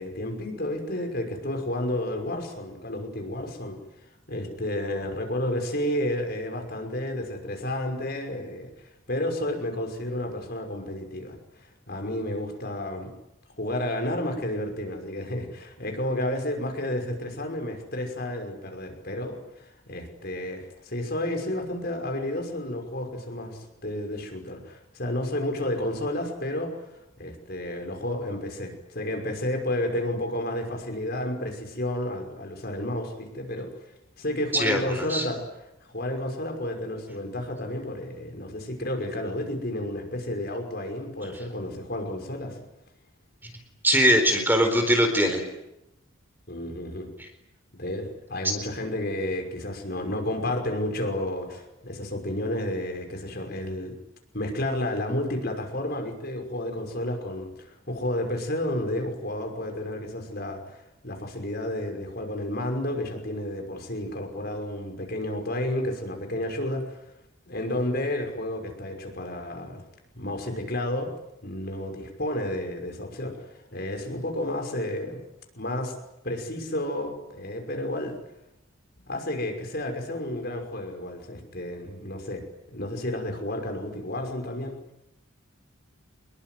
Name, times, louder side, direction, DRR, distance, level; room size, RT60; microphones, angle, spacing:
voice 1, 0.0-3.8 4.3-8.7 9.1-13.1 13.6-26.7 27.2-33.7 34.2-35.5 35.8-42.6 46.5-47.1 47.8-53.9 54.3-67.0 67.5-69.8 70.2-71.1 71.4-75.2 75.5-75.9 76.2-78.1 79.1-84.8, left 1 dB, 50° left, 4 dB, 5.8 m, -31 dB
voice 2, 34.5-35.2 43.4-43.5 43.8-45.4, equal, 10° right, 5 dB, 4.2 m, -21 dB
26.5 x 22.0 x 9.5 m, 0.88 s
head